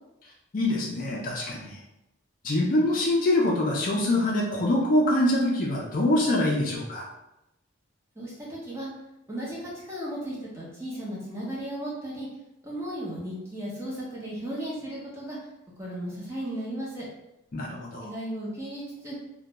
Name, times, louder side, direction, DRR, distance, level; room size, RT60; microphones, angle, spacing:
voice 1, 0.5-1.8 2.4-7.1 17.5-18.1, left 1 dB, 40° left, -3 dB, 0.4 m, -24 dB
voice 2, 8.2-8.9 9.3-12.3 12.6-15.4 15.8-17.1 18.0-19.1, right 1 dB, 15° right, -6 dB, 0.6 m, -35 dB
2.4 x 2.1 x 2.9 m, 0.90 s
head